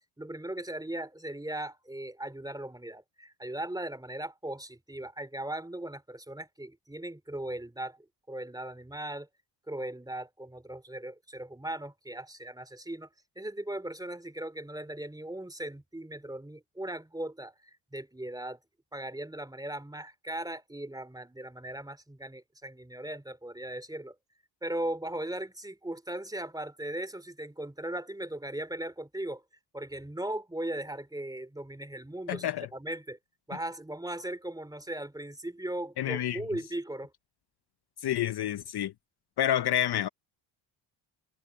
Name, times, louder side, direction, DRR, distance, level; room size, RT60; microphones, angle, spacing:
voice 1, 0.2-9.3 9.7-13.1 13.4-18.6 18.9-24.1 24.6-29.4 29.7-33.2 33.5-37.1, right 1 dB, 10° right, 2.8 m, -38 dB
voice 2, 32.3-32.7 36.0-36.4 38.0-38.9 39.4-40.1, left 11 dB, 55° left, 0.8 m, -28 dB
cardioid pair, 75°, 48 cm